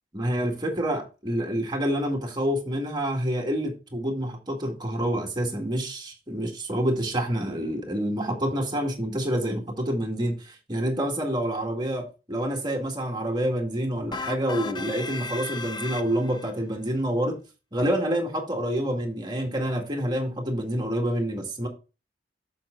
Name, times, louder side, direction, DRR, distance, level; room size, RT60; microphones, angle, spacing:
voice 1, 0.1-17.4 17.7-21.7, right 1 dB, 25° right, 1.8 m, -27 dB
sound 1, 14.1-16.5, left 3 dB, 25° left, 0.5 m, -35 dB
7.6 x 5.5 x 3.8 m
head